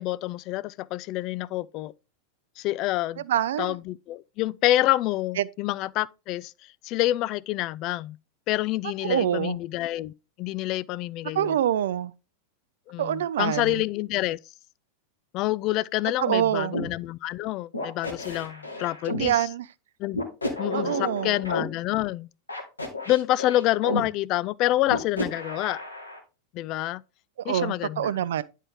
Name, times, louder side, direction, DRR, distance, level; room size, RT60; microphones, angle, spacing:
voice 1, 0.0-1.9 2.6-3.2 3.6-6.5 6.8-8.2 8.5-10.1 10.4-11.6 12.9-14.4 15.3-19.5 20.0-20.2 20.6-22.3 23.1-25.8 26.5-27.0 27.4-28.1, left 16 dB, 40° left, 0.3 m, -27 dB
voice 2, 3.3-3.8 5.4-5.5 9.0-9.6 11.4-12.1 13.0-13.8 16.2-16.7 19.2-19.7 20.7-21.3 27.4-28.4, right 11 dB, 60° right, 0.4 m, -25 dB
sound 1, 16.7-16.9 17.7-19.3 20.1-21.6 22.5-24.0 24.9-26.2, left 1 dB, 80° left, 1.9 m, -31 dB
9.8 x 4.5 x 3.6 m
figure-of-eight pair, 90°, 0 cm